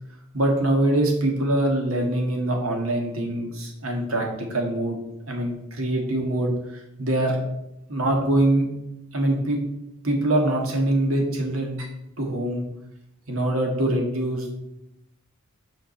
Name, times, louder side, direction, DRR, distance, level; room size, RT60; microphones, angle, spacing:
voice 1, 0.3-5.0 5.3-7.4 7.9-8.7 9.1-9.6 10.0-11.9 12.2-12.7 13.3-14.5, right 1 dB, 85° right, 1 dB, 1.8 m, -24 dB
6.8 x 5.1 x 5.4 m, 0.86 s
head